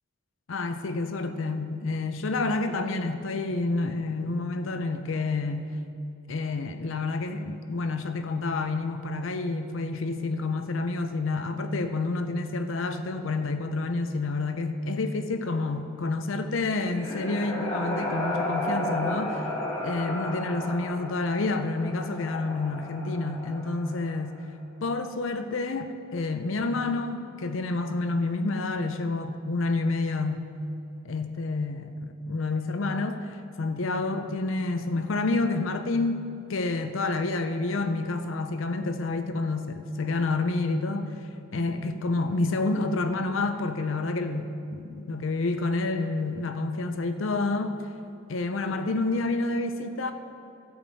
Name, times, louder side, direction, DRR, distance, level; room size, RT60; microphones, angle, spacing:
voice 1, 0.5-5.7 6.3-19.4 19.8-24.3 24.8-30.4 31.0-33.3 33.6-41.1 41.5-47.8 48.3-50.1, left 3 dB, 75° left, 8 dB, 0.6 m, -29 dB
sound 1, 16.5-24.3, left 1 dB, 15° left, 1.3 m, -33 dB
13.0 x 8.7 x 4.1 m, 2.7 s
head